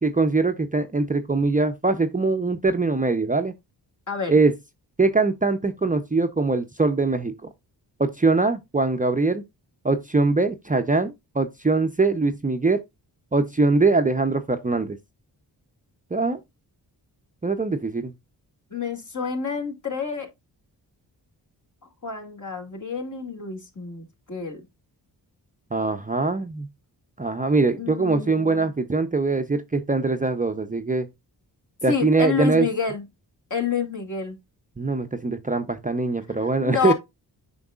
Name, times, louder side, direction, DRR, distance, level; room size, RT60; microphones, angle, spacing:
voice 1, 0.0-3.5 4.3-4.5 5.0-7.5 8.0-9.4 9.8-12.8 13.3-15.0 16.1-16.4 17.4-18.1 25.7-26.7 27.2-31.1 31.8-32.7 34.8-36.9, right 3 dB, 20° right, 0.7 m, -22 dB
voice 2, 18.7-20.3 22.0-24.6 27.8-28.7 31.9-33.1 33.5-34.4 36.4-36.9, left 5 dB, 45° left, 2.5 m, -28 dB
7.8 x 5.3 x 2.4 m
cardioid pair, 55°, 42 cm